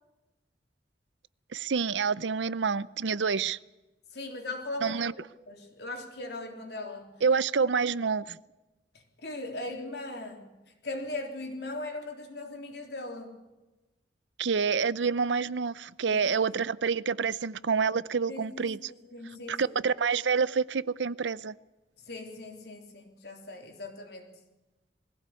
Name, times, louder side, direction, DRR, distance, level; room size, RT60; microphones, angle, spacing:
voice 1, 1.5-3.6 4.8-5.1 7.2-8.4 14.4-18.9 19.5-21.5, right 5 dB, 85° right, 19 dB, 0.6 m, -28 dB
voice 2, 4.1-7.2 8.9-10.6 10.8-13.4 16.1-16.4 18.3-19.8 22.0-24.3, left 2 dB, 65° left, 4 dB, 3.5 m, -39 dB
21.5 x 16.0 x 8.4 m, 1.1 s
head